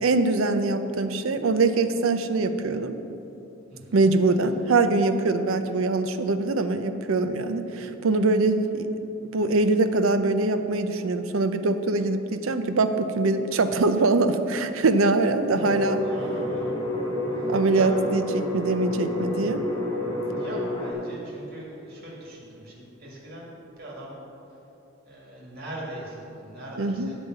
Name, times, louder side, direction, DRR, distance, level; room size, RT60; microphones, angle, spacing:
voice 1, 0.0-2.9 3.9-8.9 9.3-16.0 17.5-19.7 26.8-27.1, right 3 dB, 75° right, 9 dB, 0.6 m, -23 dB
voice 2, 3.7-4.0 15.5-15.7 16.0-16.7 17.3-17.9 20.3-24.1 25.0-27.1, right 1 dB, 50° right, -4 dB, 2.2 m, -41 dB
sound 1, 15.6-20.9, left 1 dB, 15° left, 1.4 m, -29 dB
8.9 x 5.1 x 7.9 m, 2.9 s
head